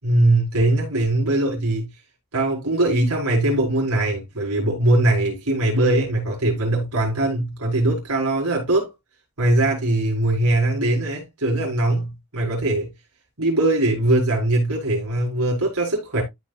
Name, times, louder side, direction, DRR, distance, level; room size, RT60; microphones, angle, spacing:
voice 1, 0.0-1.9 2.3-8.9 9.4-12.9 13.4-16.2, right 2 dB, 90° right, 5.4 m, -21 dB
14.0 x 5.5 x 2.4 m
head